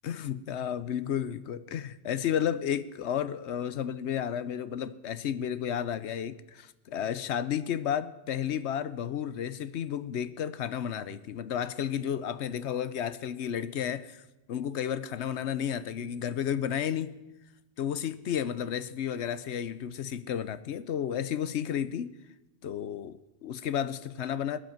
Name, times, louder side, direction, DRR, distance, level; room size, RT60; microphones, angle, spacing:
voice 1, 0.0-14.2 14.5-17.2 17.8-22.1 22.6-24.6, left 9 dB, 80° left, 14 dB, 1.0 m, -32 dB
21.0 x 8.8 x 7.2 m, 1.0 s
omnidirectional pair, 1.1 m